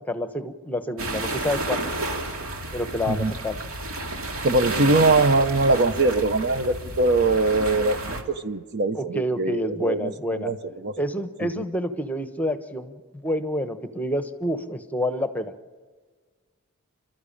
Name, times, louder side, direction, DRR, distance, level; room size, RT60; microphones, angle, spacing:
voice 1, 0.0-1.9 2.7-3.6 8.9-10.5 11.0-15.5, equal, 10° left, 9 dB, 1.0 m, -28 dB
sound 1, 1.0-8.2, right 2 dB, 75° right, 2.6 m, -31 dB
voice 2, 4.4-10.6 10.8-10.9 11.4-11.6, right 3 dB, 50° right, 10 dB, 0.9 m, -22 dB
29.0 x 13.0 x 8.7 m, 1.5 s
head